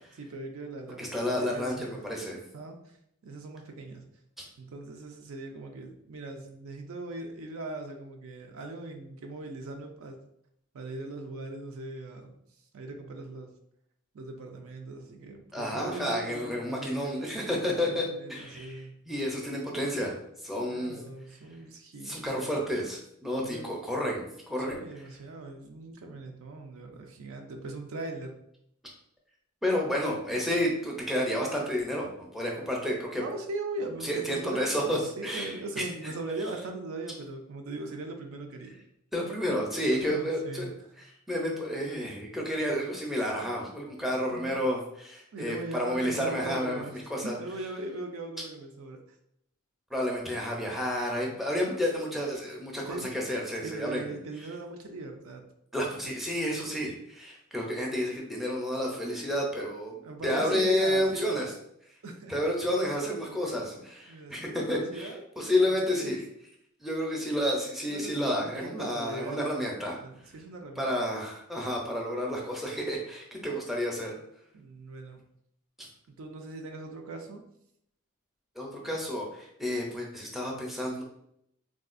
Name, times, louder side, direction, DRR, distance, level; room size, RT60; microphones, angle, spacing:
voice 1, 0.2-2.1 2.5-3.0 3.2-4.1 4.6-10.2 10.7-12.3 12.7-13.5 14.1-17.4 17.9-19.0 20.7-22.4 23.4-23.7 24.7-28.4 33.1-38.8 39.9-40.9 44.3-44.5 45.3-49.0 52.9-53.2 53.6-55.4 56.0-56.1 60.0-61.5 62.0-62.3 64.1-65.2 65.6-66.1 67.9-70.9 74.5-75.2 76.1-77.4, right 2 dB, 70° right, 3 dB, 0.5 m, -40 dB
voice 2, 1.0-2.4 15.5-20.2 20.4-20.9 22.0-24.8 29.6-33.2 34.0-36.1 39.1-40.7 41.0-47.4 49.9-54.2 55.7-61.5 62.3-65.1 65.4-66.2 66.8-70.0 70.8-74.2 75.8-75.9 78.6-81.0, equal, ahead, -2 dB, 0.5 m, -30 dB
3.6 x 2.3 x 2.4 m, 0.73 s
head